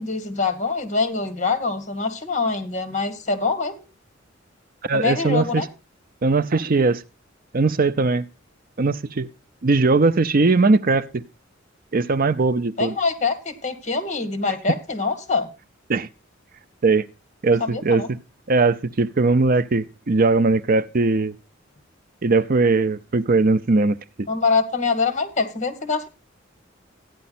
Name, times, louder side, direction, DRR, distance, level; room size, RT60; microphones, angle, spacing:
voice 1, 0.0-3.8 4.9-5.7 12.8-15.5 17.6-18.1 24.3-26.1, left 4 dB, 35° left, 2.2 m, -24 dB
voice 2, 4.9-5.6 6.2-7.0 7.5-8.2 8.8-9.3 9.6-11.2 11.9-12.9 15.9-16.1 16.8-17.1 17.4-18.2 18.5-21.3 22.2-24.0, right 3 dB, 45° right, 0.6 m, -19 dB
13.5 x 10.5 x 4.3 m
head